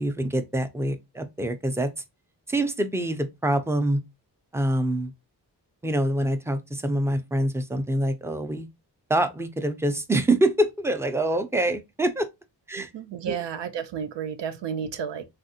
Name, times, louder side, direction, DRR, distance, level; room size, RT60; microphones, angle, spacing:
voice 1, 0.0-1.9 2.5-4.0 4.5-5.1 5.8-8.7 9.1-12.3 12.7-12.9 13.2-13.4, right 1 dB, 5° right, 0.4 m, -25 dB
voice 2, 12.8-15.2, right 7 dB, 80° right, 0.5 m, -32 dB
3.4 x 2.4 x 2.6 m
wide cardioid pair, 100°, 42 cm